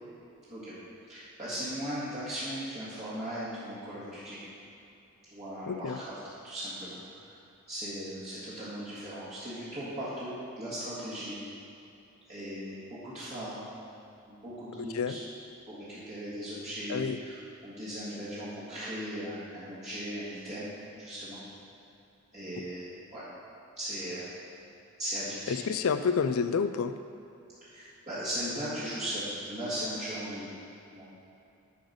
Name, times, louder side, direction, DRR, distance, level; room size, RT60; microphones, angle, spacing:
voice 1, 1.1-4.4 5.3-6.1 6.4-7.3 7.7-11.4 12.3-13.6 14.3-15.2 15.7-20.7 21.0-21.4 22.3-23.2 23.8-24.3 25.0-25.7 27.7-30.5 30.9-31.1, equal, 30° right, -12 dB, 1.6 m, -38 dB
voice 2, 5.7-6.0 14.8-15.1 16.9-17.2 25.5-26.9, left 6 dB, 75° left, 10 dB, 0.4 m, -29 dB
10.0 x 4.0 x 5.1 m, 2.8 s
head